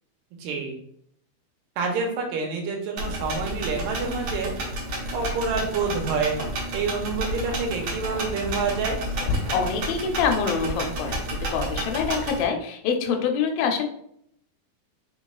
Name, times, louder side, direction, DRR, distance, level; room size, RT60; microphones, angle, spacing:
voice 1, 0.4-0.8 1.8-4.5 5.1-6.4 6.7-9.0, right 4 dB, 80° right, 2 dB, 2.4 m, -27 dB
sound 1, 3.0-12.4, right 1 dB, 65° right, 1.6 m, -31 dB
Wind, 4.7-11.2, left 3 dB, 40° left, 1.0 m, -37 dB
voice 2, 9.5-13.9, left 6 dB, 80° left, 4 dB, 2.3 m, -25 dB
5.3 x 4.2 x 2.3 m, 0.69 s
omnidirectional pair, 4.1 m